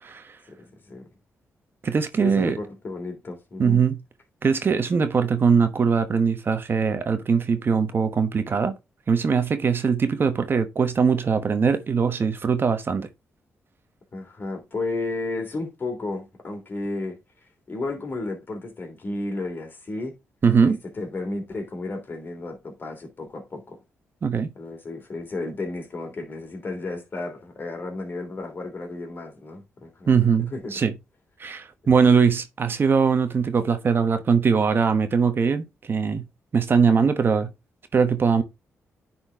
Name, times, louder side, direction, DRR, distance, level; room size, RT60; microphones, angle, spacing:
voice 1, 0.0-0.4 1.8-2.6 3.6-4.0 4.4-8.7 9.1-13.1 20.4-20.8 24.2-24.5 30.1-30.9 31.4-36.2 36.5-37.5 37.9-38.4, right 6 dB, 45° right, 1.1 m, -21 dB
voice 2, 0.6-1.1 2.2-3.8 14.1-17.2 17.7-20.2 20.6-23.8 24.6-30.1 30.5-30.7, left 2 dB, 40° left, 3.2 m, -33 dB
9.9 x 4.4 x 3.5 m
cardioid pair, 85°, 5 cm